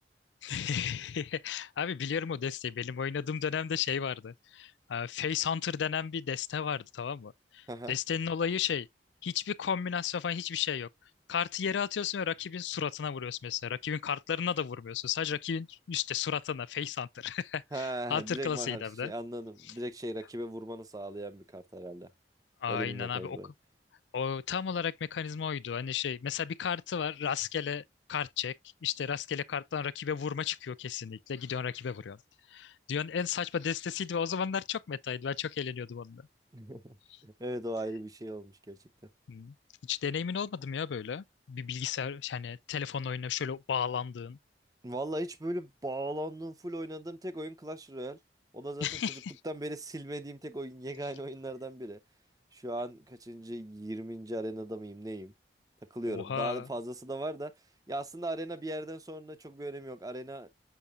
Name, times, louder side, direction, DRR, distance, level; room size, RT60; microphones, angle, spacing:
voice 1, 0.4-8.9 9.2-10.9 11.3-19.1 22.6-23.4 24.1-27.8 28.1-28.5 28.8-32.2 32.5-36.2 39.3-39.5 39.9-44.4 48.8-49.3 56.1-56.7, left 7 dB, 85° left, 0.4 m, -33 dB
voice 2, 17.7-22.1 22.7-23.5 36.5-37.0 37.2-38.8 44.8-48.2 48.5-52.0 52.5-55.3 55.9-57.5 57.9-60.5, right 1 dB, 20° right, 0.7 m, -38 dB
7.0 x 5.7 x 2.4 m
head